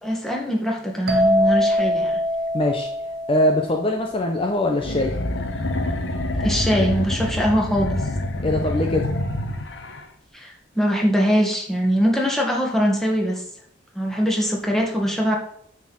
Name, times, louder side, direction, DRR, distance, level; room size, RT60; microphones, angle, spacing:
voice 1, 0.0-2.2 6.4-8.0 10.3-13.4 14.0-15.4, equal, ahead, -1 dB, 1.9 m, -22 dB
sound 1, 1.1-4.7, left 1 dB, 55° right, 1.5 m, -23 dB
voice 2, 2.5-2.9 3.3-5.1 8.4-9.1, left 1 dB, 30° left, 2 dB, 0.9 m, -22 dB
sound 2, 4.8-10.0, left 1 dB, 75° left, 1.2 m, -26 dB
9.7 x 4.5 x 7.4 m, 0.67 s
head